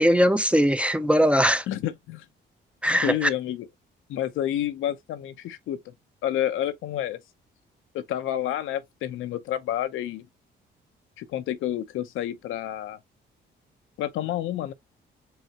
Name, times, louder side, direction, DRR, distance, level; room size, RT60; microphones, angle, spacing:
voice 1, 0.0-1.6 2.8-3.3, equal, 5° right, 0.5 m, -20 dB
voice 2, 1.7-2.3 3.0-3.7 4.1-5.9 6.2-7.2 7.9-10.3 11.2-13.0 14.0-14.7, left 11 dB, 85° left, 0.7 m, -29 dB
4.9 x 3.2 x 2.8 m
cardioid pair, 90°, 20 cm